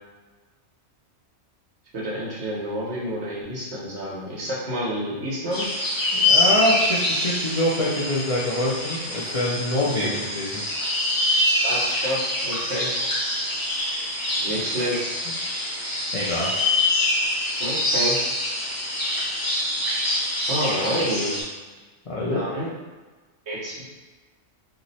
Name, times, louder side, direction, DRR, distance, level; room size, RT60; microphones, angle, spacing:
voice 1, 1.9-5.7 10.0-10.1 11.6-12.9 14.4-15.1 17.6-18.2 20.5-21.4 22.3-22.7 23.5-23.9, equal, 65° right, -5 dB, 1.1 m, -29 dB
sound 1, 5.5-21.4, left 1 dB, 20° left, 0.7 m, -25 dB
voice 2, 6.1-10.6 14.5-14.6 15.3-15.4 16.1-16.5 22.1-22.4, left 1 dB, 55° left, -7 dB, 0.3 m, -25 dB
2.8 x 2.0 x 4.0 m, 1.3 s
omnidirectional pair, 1.2 m